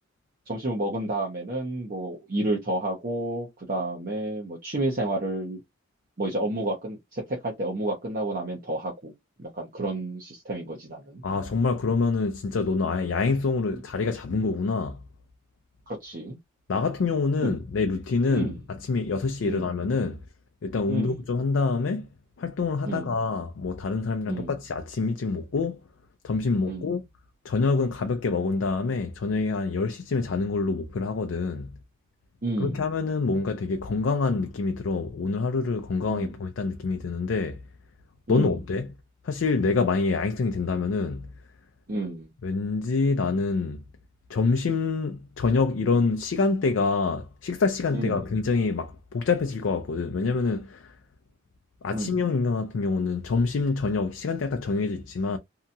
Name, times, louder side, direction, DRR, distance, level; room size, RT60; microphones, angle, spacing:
voice 1, 0.5-5.6 6.2-9.1 9.4-11.2 15.9-16.4 17.4-17.5 18.3-18.6 19.4-19.7 20.9-21.2 22.9-23.1 24.3-24.5 26.7-26.9 32.4-32.8 36.1-36.3 38.3-38.6 41.9-42.3 47.9-48.3 51.9-52.2, right 1 dB, 45° right, 0.7 m, -30 dB
voice 2, 11.2-15.0 16.7-20.2 20.6-22.1 22.4-25.8 26.2-27.0 27.4-31.7 32.6-37.6 38.3-38.9 39.2-41.3 42.4-43.8 44.3-50.9 51.8-55.4, left 4 dB, 70° left, 0.4 m, -26 dB
2.8 x 2.3 x 2.6 m
head